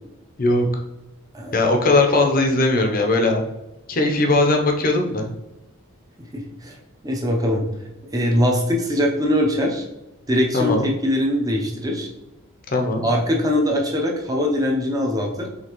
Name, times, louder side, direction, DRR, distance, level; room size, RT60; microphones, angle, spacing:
voice 1, 1.5-3.4 3.9-5.2 10.5-10.9 12.7-13.0, left 2 dB, 40° left, 3 dB, 0.6 m, -19 dB
voice 2, 6.3-6.8 7.0-7.6 8.1-9.8 10.3-12.1 13.0-15.5, left 1 dB, 15° right, 0 dB, 0.6 m, -22 dB
5.1 x 3.4 x 3.0 m, 1.0 s
head